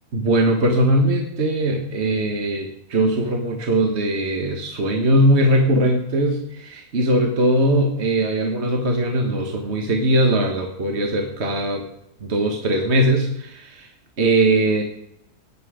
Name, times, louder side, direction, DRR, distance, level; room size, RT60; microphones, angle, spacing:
voice 1, 0.1-11.8 12.2-13.9 14.2-14.8, right 1 dB, 45° right, 3 dB, 1.6 m, -20 dB
17.0 x 9.9 x 5.0 m, 0.80 s
omnidirectional pair, 1.7 m